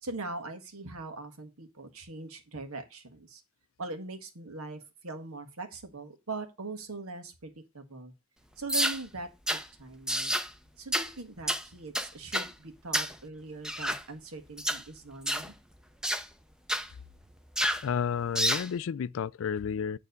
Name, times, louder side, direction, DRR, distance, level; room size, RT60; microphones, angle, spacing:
voice 1, 0.0-3.4 3.8-8.1 8.6-10.3 10.8-15.5, right 3 dB, 85° right, 1.6 m, -41 dB
sound 1, 8.7-9.0 9.5-9.6 10.1-10.5 10.9-11.1 11.5-11.6 11.9-12.5 12.9-13.1 13.6-14.0 14.6-14.8 15.3-15.5 16.0-16.2 16.7-16.9 17.6-17.8 18.3-18.7, equal, 5° right, 0.5 m, -29 dB
voice 2, 17.8-20.0, left 7 dB, 65° left, 0.3 m, -31 dB
9.4 x 3.4 x 6.6 m
head